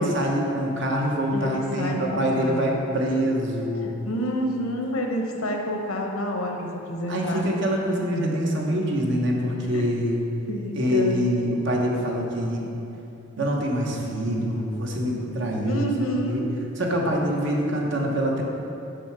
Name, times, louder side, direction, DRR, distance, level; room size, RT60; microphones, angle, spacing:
voice 1, 0.0-3.9 7.1-10.2 10.7-12.7 13.4-16.4 16.8-18.4, equal, 55° right, -1 dB, 1.0 m, -25 dB
voice 2, 1.3-2.6 4.0-7.5 9.7-9.8 10.5-11.2 15.6-16.5, equal, 80° left, 2 dB, 0.9 m, -28 dB
5.6 x 5.0 x 5.9 m, 3.0 s
head